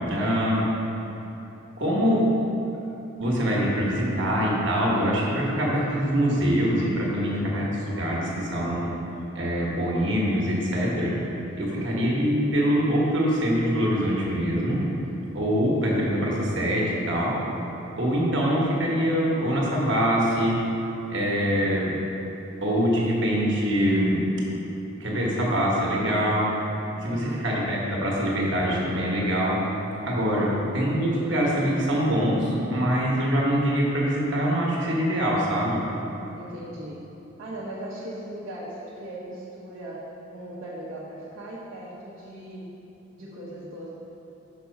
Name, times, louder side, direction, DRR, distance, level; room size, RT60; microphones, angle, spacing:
voice 1, 0.1-0.7 1.8-2.3 3.2-8.9 9.3-11.1 11.6-14.8 15.3-17.4 18.0-20.6 21.1-21.9 22.6-24.2 25.0-26.5 27.0-29.6 30.0-30.5 30.7-35.8, equal, 60° right, -4 dB, 1.3 m, -24 dB
voice 2, 11.5-11.9 27.0-27.5 30.3-30.6 36.4-37.1 37.4-42.7 43.2-43.9, right 1 dB, 80° right, -7 dB, 1.0 m, -39 dB
6.0 x 4.8 x 5.3 m, 3.0 s
head